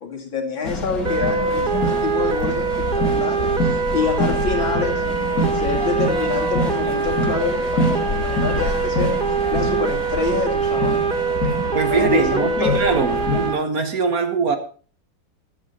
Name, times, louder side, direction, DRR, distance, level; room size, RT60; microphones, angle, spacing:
voice 1, 0.0-9.1 9.5-11.1 11.8-12.8 13.1-13.2, left 5 dB, 75° left, 1 dB, 3.3 m, -27 dB
sound 1, 0.6-13.5, left 2 dB, 45° left, 2.4 m, -26 dB
sound 2, 1.0-13.5, right 5 dB, 80° right, 0.4 m, -23 dB
voice 2, 11.4-14.6, right 5 dB, 50° right, 8 dB, 1.5 m, -22 dB
14.0 x 11.0 x 4.2 m, 0.40 s
omnidirectional pair, 2.1 m